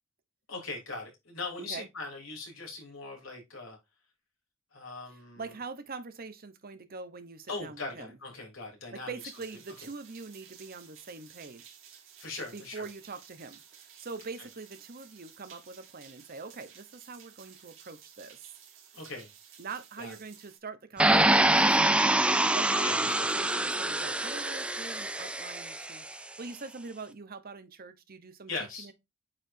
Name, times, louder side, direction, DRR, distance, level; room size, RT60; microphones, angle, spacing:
voice 1, 0.5-3.8 4.7-5.4 7.5-9.1 12.2-12.8 18.9-19.3 20.0-20.1 22.8-23.3 28.5-28.9, left 3 dB, 90° left, 3.5 m, -40 dB
voice 2, 1.6-1.9 5.1-8.1 8.9-11.8 12.5-18.5 19.6-28.9, right 4 dB, 50° right, 1.0 m, -44 dB
sound 1, 9.2-20.6, right 8 dB, 70° right, 2.5 m, -54 dB
sound 2, 21.0-26.0, right 1 dB, 5° right, 0.4 m, -25 dB
8.5 x 4.8 x 2.7 m
head